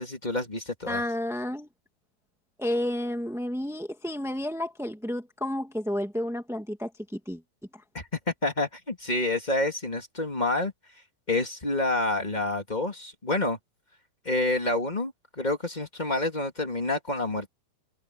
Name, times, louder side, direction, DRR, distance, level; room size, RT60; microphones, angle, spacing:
voice 1, 0.0-1.0 7.9-8.1 8.4-10.7 11.3-13.6 14.2-17.5, left 2 dB, 15° left, 2.0 m, -28 dB
voice 2, 0.9-1.7 2.6-7.4, left 1 dB, ahead, 0.6 m, -31 dB
omnidirectional pair, 4.0 m